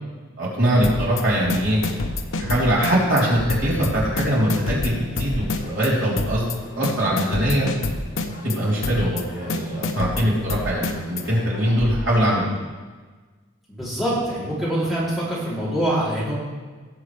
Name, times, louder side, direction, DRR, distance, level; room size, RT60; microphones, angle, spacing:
voice 1, 0.4-1.8 2.4-6.4 6.7-7.7 8.4-12.5, equal, 65° right, -6 dB, 3.6 m, -22 dB
sound 1, 0.8-1.2 1.5-3.2 3.5-3.9 4.2-5.9 6.2-6.6 6.8-8.6 8.8-9.2 9.5-11.2, left 3 dB, 70° left, 0.8 m, -27 dB
sound 2, 1.2-11.9, equal, 50° left, 1.9 m, -37 dB
voice 2, 13.7-16.3, right 1 dB, ahead, -10 dB, 3.3 m, -24 dB
18.5 x 7.6 x 3.3 m, 1.4 s
head